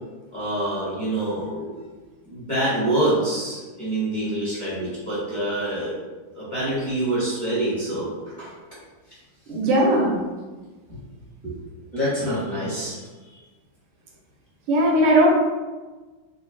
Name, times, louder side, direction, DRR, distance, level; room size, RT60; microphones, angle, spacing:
voice 1, 0.3-1.8 2.3-5.9 6.3-8.5 10.9-11.0 11.4-11.5 11.9-13.0 13.3-13.4, right 1 dB, 30° left, -10 dB, 1.1 m, -26 dB
voice 2, 9.5-10.2 14.7-15.3, right 1 dB, 80° right, -2 dB, 1.7 m, -18 dB
3.8 x 2.2 x 3.9 m, 1.3 s
omnidirectional pair, 2.4 m